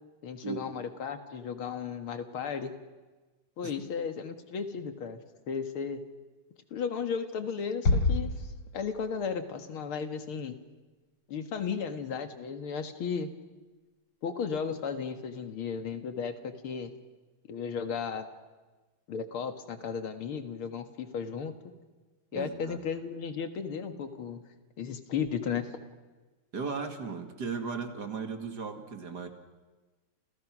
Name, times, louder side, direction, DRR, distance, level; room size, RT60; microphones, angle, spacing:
voice 1, 0.2-2.7 3.6-5.2 5.5-6.0 6.7-10.6 11.3-13.3 14.2-16.9 17.5-18.3 19.1-21.7 22.3-24.4 24.8-25.7, left 6 dB, 85° left, 8 dB, 2.6 m, -35 dB
Bass drum, 7.8-9.3, left 3 dB, 60° left, 4.4 m, -28 dB
voice 2, 22.3-22.8 26.5-29.3, right 5 dB, 50° right, 7 dB, 2.7 m, -36 dB
29.5 x 28.5 x 6.2 m, 1.2 s
omnidirectional pair, 2.3 m